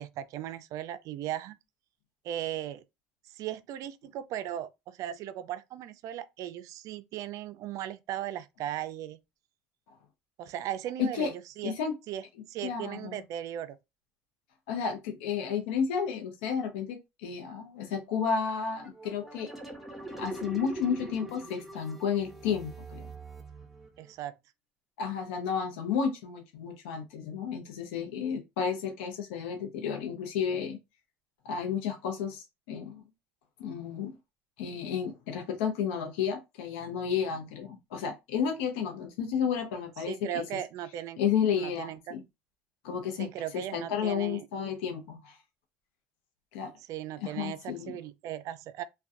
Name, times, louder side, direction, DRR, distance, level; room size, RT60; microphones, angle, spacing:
voice 1, 0.0-1.6 2.2-2.8 3.3-9.2 10.4-11.8 12.1-13.8 24.0-24.4 40.1-41.2 41.6-42.2 43.2-44.5 46.9-48.8, right 11 dB, 60° right, 0.4 m, -37 dB
voice 2, 11.6-11.9 12.6-13.2 14.7-19.5 20.2-23.0 25.0-30.8 31.4-33.0 33.6-34.1 34.6-40.4 41.2-42.2 42.8-43.3 43.7-45.4 46.5-46.7 47.2-48.0, left 7 dB, 85° left, 0.6 m, -32 dB
sound 1, 18.7-24.1, right 2 dB, 5° right, 0.8 m, -43 dB
2.3 x 2.2 x 2.6 m
supercardioid pair, 90°, 6 cm